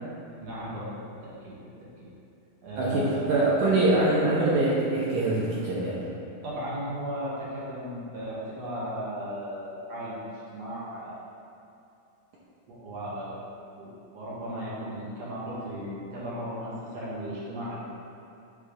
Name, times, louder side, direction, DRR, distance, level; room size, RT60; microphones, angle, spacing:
voice 1, 0.4-1.6 2.0-2.1 2.6-3.2 6.4-11.1 12.7-13.4 13.8-17.8, equal, 55° right, -8 dB, 2.2 m, -36 dB
voice 2, 2.8-6.0, right 2 dB, 70° right, -7 dB, 1.9 m, -24 dB
8.5 x 3.4 x 5.1 m, 2.7 s
omnidirectional pair, 4.3 m